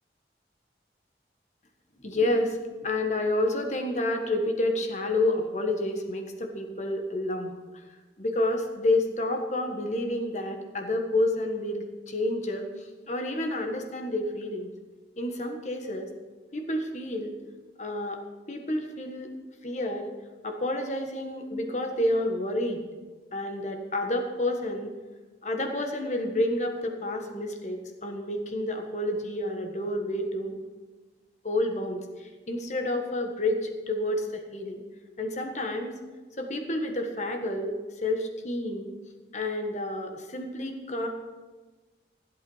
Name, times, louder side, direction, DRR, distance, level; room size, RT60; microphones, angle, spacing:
voice 1, 2.0-7.5 8.2-14.7 15.2-16.1 16.5-17.3 17.8-18.2 18.5-19.3 19.6-20.1 20.4-22.8 23.3-24.9 25.4-30.6 31.4-34.8 35.2-36.0 36.4-38.9 39.3-41.1, left 1 dB, 40° left, 4 dB, 1.4 m, -29 dB
15.0 x 8.3 x 5.6 m, 1.3 s
head